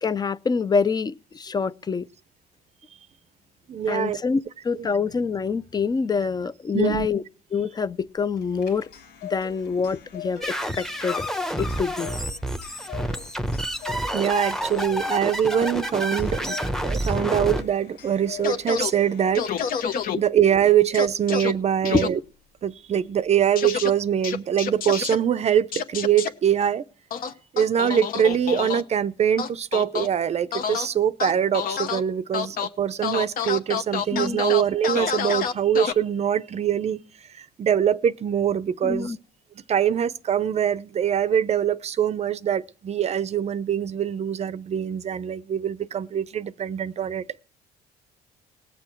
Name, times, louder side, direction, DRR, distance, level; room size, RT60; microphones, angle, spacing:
voice 1, 0.0-2.1 3.9-7.2 7.5-8.9 9.3-11.2 11.6-12.1 20.1-20.2 21.9-22.0 34.1-34.4 38.8-39.2, left 5 dB, 25° left, 0.5 m, -26 dB
voice 2, 3.7-4.2 4.8-4.9 6.7-7.1 14.1-16.6 16.8-22.2 22.6-26.8 27.5-37.0 37.4-39.2 39.7-47.4, right 9 dB, 40° right, 0.6 m, -23 dB
Clock, 8.4-20.0, left 7 dB, 85° left, 3.8 m, -42 dB
sound 1, 10.4-17.6, equal, ahead, 0.9 m, -29 dB
sound 2, 18.4-18.9 19.4-20.2 20.9-21.5 21.9-22.1 23.6-23.9 24.2-25.2 25.7-26.3 27.1-28.8 29.4-30.1 30.5-30.9 31.2-32.0 32.3-32.7 33.0-35.9, left 7 dB, 55° left, 1.0 m, -27 dB
19.0 x 6.8 x 4.5 m
cardioid pair, 110°, 17 cm